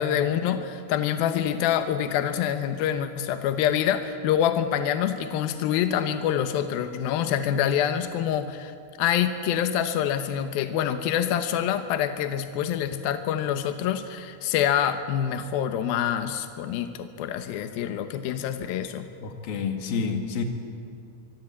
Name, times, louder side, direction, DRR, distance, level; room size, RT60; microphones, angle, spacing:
voice 1, 0.0-19.0, left 9 dB, 80° left, 8 dB, 2.2 m, -26 dB
voice 2, 19.2-20.4, left 5 dB, 55° left, 4 dB, 3.4 m, -29 dB
24.5 x 23.5 x 8.5 m, 2.4 s
omnidirectional pair, 5.5 m